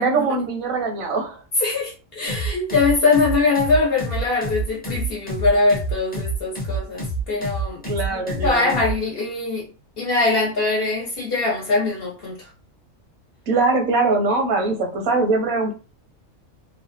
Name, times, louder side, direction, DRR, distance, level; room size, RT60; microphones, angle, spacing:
voice 1, 0.0-1.4 7.9-8.8 13.5-15.7, right 3 dB, 85° right, 1.2 m, -22 dB
voice 2, 1.6-7.8 8.1-9.7 10.0-12.4, left 3 dB, 50° left, 1.1 m, -22 dB
sound 1, 2.3-9.0, right 2 dB, 10° left, 0.5 m, -27 dB
3.2 x 2.1 x 2.6 m
omnidirectional pair, 1.4 m